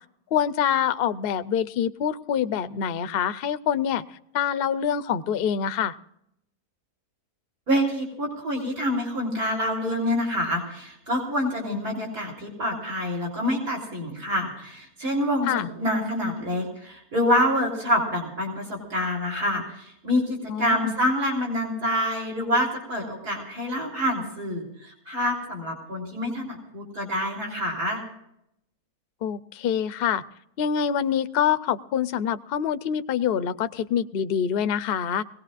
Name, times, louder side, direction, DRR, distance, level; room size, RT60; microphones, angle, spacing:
voice 1, 0.3-4.0 4.3-5.9 15.5-15.7 20.5-20.9 29.2-30.2 30.6-35.2, left 8 dB, 60° left, 12 dB, 0.6 m, -25 dB
voice 2, 7.7-28.0, equal, 80° right, -1 dB, 4.0 m, -27 dB
21.5 x 18.0 x 2.5 m, 0.77 s
omnidirectional pair, 1.6 m